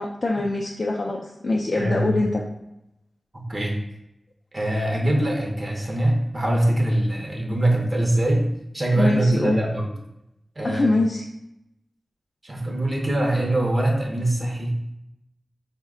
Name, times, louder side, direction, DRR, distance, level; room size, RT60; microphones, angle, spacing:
voice 1, 0.0-2.4 9.0-9.6 10.6-11.2, left 2 dB, 45° left, -1 dB, 0.3 m, -23 dB
voice 2, 1.7-2.3 3.3-3.8 4.5-9.9 10.6-10.8 12.4-14.8, right 1 dB, 35° right, 0 dB, 0.7 m, -23 dB
4.0 x 2.1 x 3.6 m, 0.85 s
wide cardioid pair, 95°, 0 cm